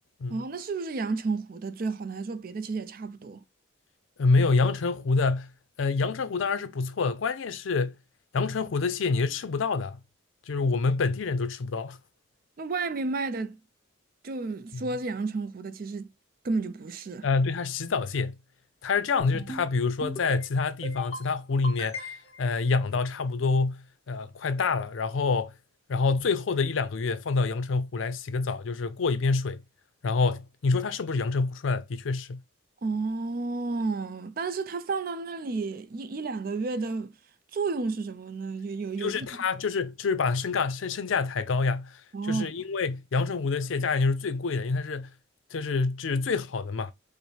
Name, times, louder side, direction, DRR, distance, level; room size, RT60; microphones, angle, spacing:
voice 1, 0.3-3.4 12.6-13.6 14.2-16.1 16.4-17.3 32.8-37.1 37.5-39.3 42.1-42.5, right 3 dB, 45° right, 0.4 m, -31 dB
voice 2, 4.2-5.5 5.8-7.9 8.3-10.0 10.5-12.0 14.7-14.8 17.2-18.4 18.8-25.5 25.9-29.6 30.0-32.4 39.0-45.1 45.5-46.9, left 4 dB, 80° left, 0.5 m, -27 dB
sound 1, 19.2-19.6 20.0-20.5 20.8-21.3 21.6-22.4, left 1 dB, 30° left, 1.0 m, -37 dB
5.1 x 2.1 x 3.2 m
head